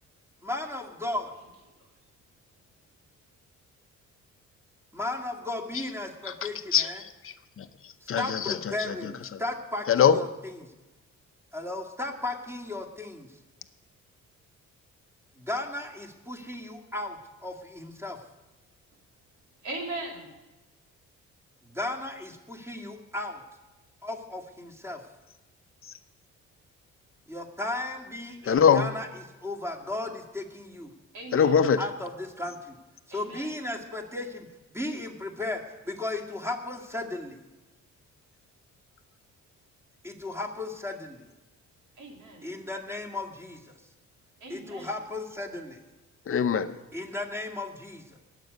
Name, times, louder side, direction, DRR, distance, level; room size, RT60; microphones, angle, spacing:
voice 1, 0.4-1.3 4.9-7.0 8.2-10.3 11.5-13.3 15.4-18.2 21.6-23.4 24.0-25.0 27.3-29.1 29.4-30.9 31.8-32.7 33.1-34.5 34.7-37.4 40.0-41.2 42.4-43.7 44.5-45.8 46.9-48.2, left 2 dB, 10° right, 2 dB, 2.2 m, -35 dB
voice 2, 6.2-9.4 9.9-10.2 28.4-28.9 31.3-31.8 46.3-46.8, left 7 dB, 45° left, 10 dB, 0.7 m, -24 dB
voice 3, 19.6-20.3 31.1-31.6 33.1-33.5 42.0-42.5 44.4-44.9, right 2 dB, 90° right, 0 dB, 3.1 m, -39 dB
21.5 x 8.3 x 5.3 m, 1.1 s
cardioid pair, 90°, 30 cm